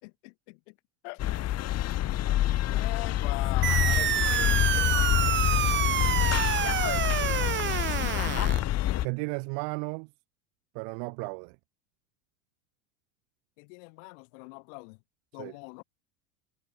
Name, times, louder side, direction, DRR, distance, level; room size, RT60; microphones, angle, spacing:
voice 1, 0.0-0.8 1.0-1.5 2.7-4.4 13.6-15.0 15.3-15.8, left 35 dB, 65° left, 5.4 m, -42 dB
sound 1, 1.2-9.0, left 14 dB, 40° left, 1.9 m, -26 dB
sound 2, 3.6-8.6, right 12 dB, 30° right, 0.7 m, -28 dB
voice 2, 9.0-10.1 10.8-11.6 15.4-15.5, right 40 dB or more, 65° right, 5.2 m, -34 dB
supercardioid pair, 110°, 39 cm